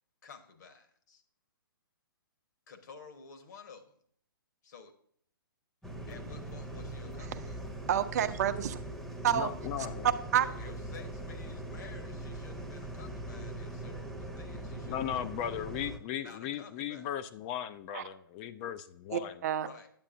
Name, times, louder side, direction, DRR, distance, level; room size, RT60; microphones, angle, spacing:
voice 1, 0.2-1.2 2.7-4.0 4.6-4.9 6.1-7.6 10.4-15.6 16.2-17.1 19.6-19.9, left 5 dB, 50° left, 6 dB, 1.3 m, -52 dB
sound 1, 5.8-16.0, right 1 dB, 5° left, 0.8 m, -41 dB
voice 2, 7.9-8.8 9.2-9.5 10.0-10.5 17.9-18.0 19.1-19.7, right 10 dB, 45° right, 11 dB, 0.6 m, -28 dB
voice 3, 9.3-10.1 14.9-19.4, left 10 dB, 25° left, 12 dB, 0.4 m, -37 dB
8.8 x 8.1 x 2.6 m, 0.64 s
figure-of-eight pair, 130°, 12 cm